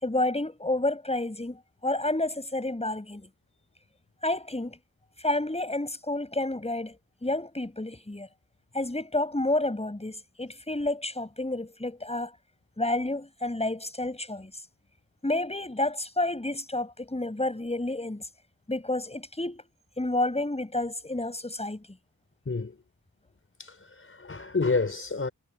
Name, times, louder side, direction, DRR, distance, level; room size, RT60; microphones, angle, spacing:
voice 1, 0.0-3.3 4.2-4.8 5.2-8.3 8.7-12.3 12.8-14.5 15.2-18.3 18.7-19.6 20.0-21.9, left 2 dB, 20° left, 7.6 m, -30 dB
voice 2, 23.6-25.3, left 4 dB, 40° left, 5.2 m, -29 dB
cardioid pair, 60°, 33 cm